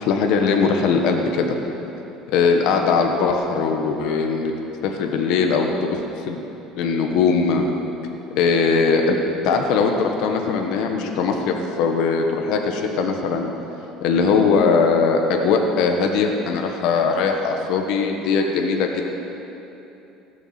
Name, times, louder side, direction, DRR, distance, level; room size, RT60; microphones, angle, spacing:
voice 1, 0.0-1.5 2.3-4.5 4.8-6.0 6.3-6.4 6.8-7.7 8.4-9.2 9.4-13.5 14.0-19.1, left 5 dB, 65° left, 3 dB, 1.2 m, -20 dB
16.5 x 7.0 x 7.4 m, 3.0 s
cardioid pair, 155°, 0 cm